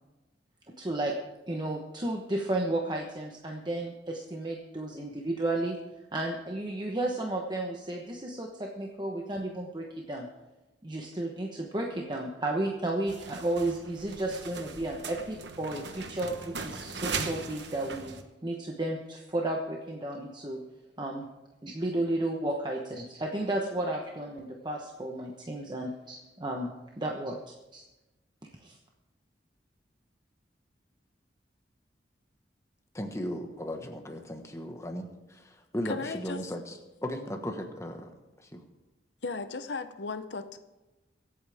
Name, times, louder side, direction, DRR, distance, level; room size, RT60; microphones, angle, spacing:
voice 1, 0.7-1.2 1.5-5.8 6.1-10.3 10.8-18.2 18.4-20.6 21.0-21.3 21.6-26.7 27.0-27.8 28.6-28.8, right 1 dB, 25° right, 0 dB, 1.0 m, -33 dB
sound 1, 13.1-18.2, right 4 dB, 75° right, 1.1 m, -39 dB
voice 2, 32.9-38.1 38.4-38.6, equal, 15° left, 4 dB, 1.4 m, -37 dB
voice 3, 35.8-36.4 39.2-40.6, left 4 dB, 70° left, 10 dB, 0.8 m, -36 dB
24.0 x 8.6 x 3.5 m, 1.0 s
head